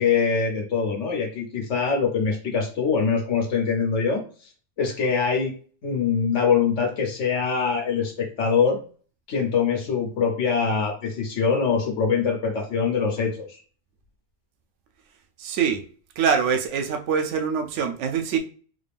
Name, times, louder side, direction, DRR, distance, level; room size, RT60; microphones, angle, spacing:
voice 1, 0.0-4.2 4.8-5.5 5.8-8.8 9.3-13.6, left 5 dB, 80° left, 0 dB, 1.1 m, -23 dB
voice 2, 15.4-15.8 16.2-18.4, right 6 dB, 85° right, 5 dB, 0.9 m, -24 dB
3.7 x 2.4 x 3.4 m, 0.40 s
omnidirectional pair, 1.2 m